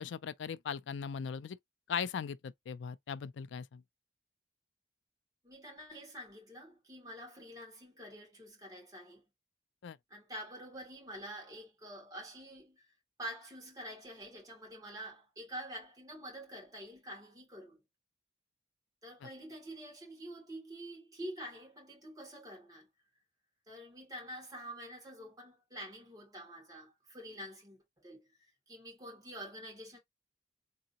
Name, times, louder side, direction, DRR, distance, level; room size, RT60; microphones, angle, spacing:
voice 1, 0.0-1.6 1.9-3.8 9.8-10.0 19.2-19.3, left 7 dB, 85° left, 0.4 m, -39 dB
voice 2, 5.4-9.2 10.1-12.9 13.2-17.8 19.0-22.9 23.7-28.3 28.7-30.0, equal, 20° right, 2.5 m, -47 dB
3.9 x 3.7 x 2.8 m
head